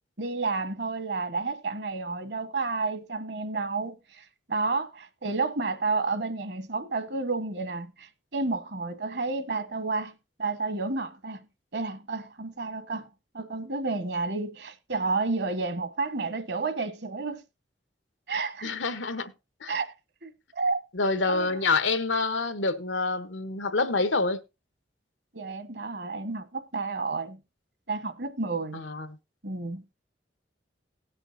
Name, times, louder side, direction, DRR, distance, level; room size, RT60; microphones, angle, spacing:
voice 1, 0.2-10.1 10.4-11.4 11.7-13.1 13.3-17.4 18.3-18.8 19.7-19.9 20.2-20.8 21.2-21.6 25.3-27.4 27.9-28.8 29.4-29.8, right 3 dB, 65° right, 1.3 m, -31 dB
voice 2, 18.6-19.3 19.6-19.8 20.9-24.4 28.7-29.2, left 3 dB, 90° left, 1.1 m, -27 dB
18.5 x 6.4 x 2.6 m
head